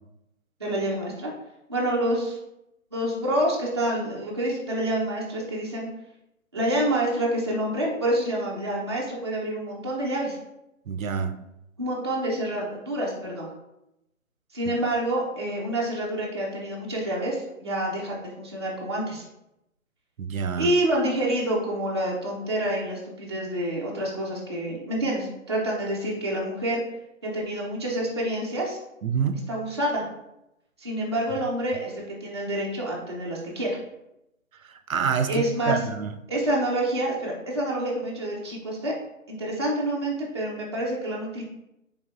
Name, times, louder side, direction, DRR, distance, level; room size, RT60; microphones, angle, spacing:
voice 1, 0.6-1.3 1.7-2.4 2.9-5.9 6.5-10.4 11.8-13.5 14.5-19.2 20.6-26.8 27.2-28.8 29.5-30.1 30.8-33.8 35.3-35.8 36.3-38.9 39.3-41.4, right 1 dB, 20° right, -5 dB, 0.4 m, -27 dB
voice 2, 10.9-11.3 14.7-14.8 20.2-20.7 29.0-29.4 34.6-36.1, right 6 dB, 80° right, 9 dB, 0.5 m, -27 dB
4.2 x 3.3 x 2.3 m, 0.86 s
figure-of-eight pair, 140°, 41 cm